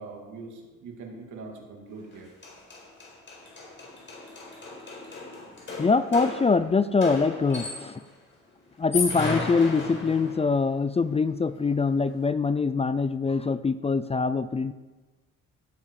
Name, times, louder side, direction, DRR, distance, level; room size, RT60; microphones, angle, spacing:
voice 1, 0.0-2.3, right 3 dB, 75° right, 1 dB, 2.7 m, -42 dB
sound 1, 2.1-2.2 2.4-8.1 8.7-10.5, left 3 dB, 40° left, 4.8 m, -35 dB
voice 2, 5.8-8.0 8.8-14.7, left 4 dB, 20° left, 13 dB, 0.4 m, -24 dB
17.0 x 7.6 x 4.9 m, 1.2 s
cardioid pair, 90°, 30 cm